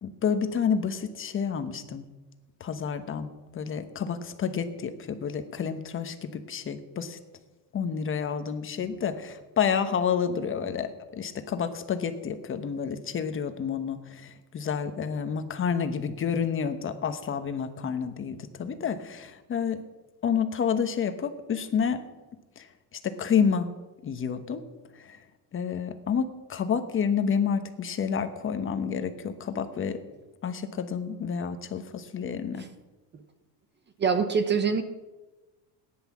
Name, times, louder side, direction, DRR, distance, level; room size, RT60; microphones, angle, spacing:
voice 1, 0.0-2.1 2.6-3.3 3.5-7.2 7.7-19.8 20.2-22.0 22.6-22.7 23.0-23.7 24.0-24.6 24.9-25.2 25.5-30.0 30.4-32.6, left 7 dB, 25° left, 8 dB, 1.0 m, -29 dB
voice 2, 34.0-34.8, right 6 dB, 25° right, 10 dB, 0.9 m, -24 dB
18.0 x 10.5 x 7.3 m, 1.1 s
cardioid pair, 165°, 46 cm